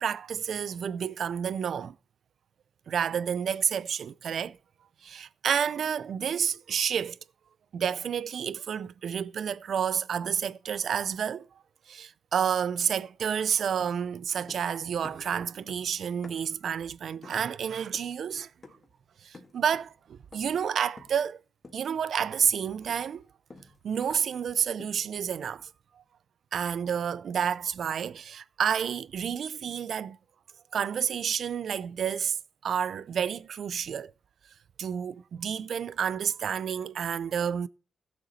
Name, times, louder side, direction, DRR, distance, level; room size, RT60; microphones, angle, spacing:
voice 1, 0.0-1.9 2.9-4.6 5.0-7.2 7.7-11.5 11.9-18.5 19.2-21.4 21.7-23.2 23.8-25.7 26.5-30.2 30.7-32.4 32.6-34.1 34.8-37.7, right 8 dB, 65° right, 0.4 m, -30 dB
sound 1, 13.8-14.8 15.0-16.6 17.2-17.5 17.9-18.2 18.6-18.9 19.3-20.0 20.3-20.6 21.0-21.3 21.6-21.9 22.2-24.4 24.8-25.1, left 3 dB, 30° left, 1.8 m, -51 dB
15.5 x 6.9 x 4.1 m
wide cardioid pair, 130°, 0 cm